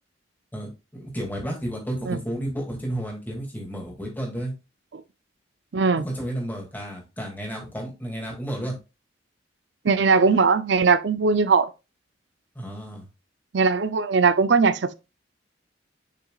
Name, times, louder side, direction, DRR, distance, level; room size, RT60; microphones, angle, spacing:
voice 1, 0.5-4.5 6.0-8.8 12.5-13.1, right 1 dB, 10° left, 2.2 m, -32 dB
voice 2, 5.7-6.0 9.8-11.7 13.5-14.9, right 4 dB, 65° right, 0.5 m, -20 dB
6.9 x 5.9 x 2.4 m
head